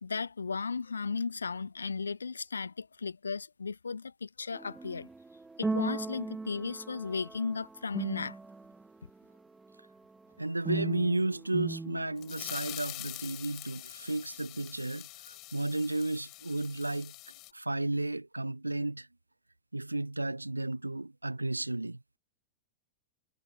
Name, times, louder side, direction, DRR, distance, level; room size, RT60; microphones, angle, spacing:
voice 1, 0.0-5.1 5.6-8.3, left 5 dB, 75° left, 1.1 m, -35 dB
sound 1, 4.5-8.9 10.6-12.7, right 3 dB, 10° right, 1.3 m, -38 dB
voice 2, 10.4-17.1 17.5-19.1 19.7-22.0, right 2 dB, 85° right, 0.9 m, -33 dB
sound 2, 12.2-17.5, left 22 dB, 40° left, 4.2 m, -44 dB
figure-of-eight pair, 90°, 0 cm